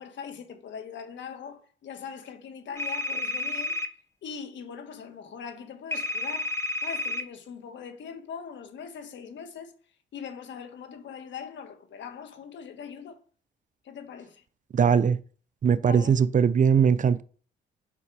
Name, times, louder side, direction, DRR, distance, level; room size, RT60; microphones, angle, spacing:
voice 1, 0.0-3.7 4.2-6.5 6.8-9.7 10.1-13.2 13.8-14.4 15.8-16.2, left 6 dB, 65° left, 1.6 m, -41 dB
sound 1, 2.8-3.9 5.9-7.2, left 1 dB, 15° left, 1.0 m, -30 dB
voice 2, 14.7-15.2 15.6-17.2, right 7 dB, 40° right, 0.6 m, -20 dB
8.4 x 5.6 x 4.8 m
cardioid pair, 90°, 20 cm